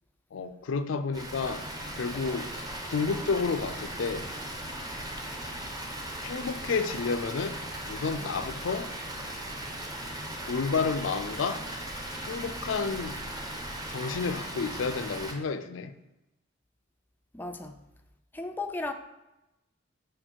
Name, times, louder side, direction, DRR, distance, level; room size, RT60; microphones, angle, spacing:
voice 1, 0.3-1.7 1.9-2.5 2.9-4.3 6.2-7.6 7.9-8.9 10.5-11.6 12.2-13.2 13.9-16.0, left 4 dB, 90° left, 0.5 m, -30 dB
Water, 1.1-15.3, right 1 dB, 20° right, 0.8 m, -38 dB
voice 2, 17.3-17.9 18.3-18.9, left 2 dB, 10° left, 0.4 m, -35 dB
6.5 x 4.6 x 4.5 m
head